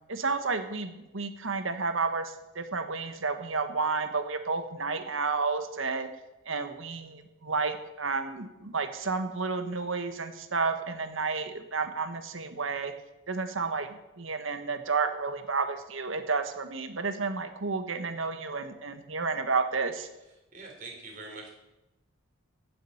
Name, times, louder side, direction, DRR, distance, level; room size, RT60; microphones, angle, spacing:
voice 1, 0.1-6.1 6.4-12.9 13.3-13.9 14.2-20.1, right 4 dB, 75° right, 8 dB, 1.4 m, -31 dB
voice 2, 20.5-21.5, right 3 dB, 40° right, -1 dB, 4.1 m, -43 dB
15.5 x 7.6 x 7.2 m, 0.97 s
head